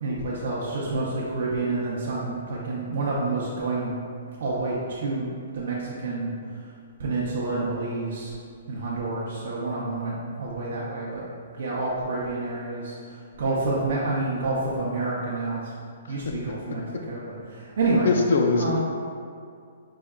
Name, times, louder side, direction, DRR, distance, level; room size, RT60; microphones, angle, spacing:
voice 1, 0.0-3.9 4.4-6.3 7.0-8.3 8.7-11.2 11.5-15.6 16.1-18.1 18.6-18.8, right 3 dB, 55° right, -6 dB, 0.6 m, -28 dB
voice 2, 16.0-16.8 18.0-18.8, left 4 dB, 55° left, 3 dB, 0.5 m, -24 dB
5.1 x 3.6 x 2.3 m, 2.3 s
hypercardioid pair, 175°, 0 cm